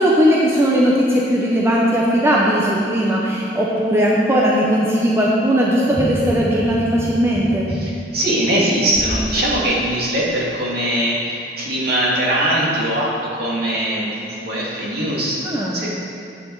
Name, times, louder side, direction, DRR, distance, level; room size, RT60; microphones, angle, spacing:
voice 1, 0.0-7.7 15.4-15.8, equal, 15° right, -4 dB, 0.9 m, -18 dB
sound 1, 5.9-9.3 9.8-9.9, equal, 15° left, 0.9 m, -29 dB
voice 2, 7.7-15.4 15.7-15.9, right 1 dB, 60° right, -6 dB, 2.4 m, -21 dB
11.0 x 8.6 x 4.0 m, 2.5 s
head